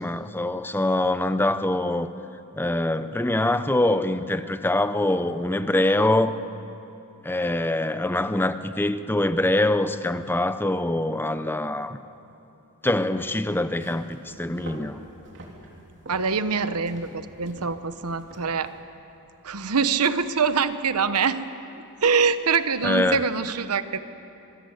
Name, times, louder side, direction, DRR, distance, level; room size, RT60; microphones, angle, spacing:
voice 1, 0.0-2.1 2.5-6.3 7.2-12.0 12.8-15.0 22.8-23.2, left 1 dB, 10° left, 11 dB, 0.7 m, -24 dB
sound 1, 13.7-18.8, right 1 dB, 55° right, 3.5 m, -46 dB
voice 2, 16.1-18.7 19.4-21.4 22.0-24.0, right 5 dB, 85° right, 12 dB, 1.0 m, -24 dB
26.0 x 20.5 x 8.2 m, 2.8 s
head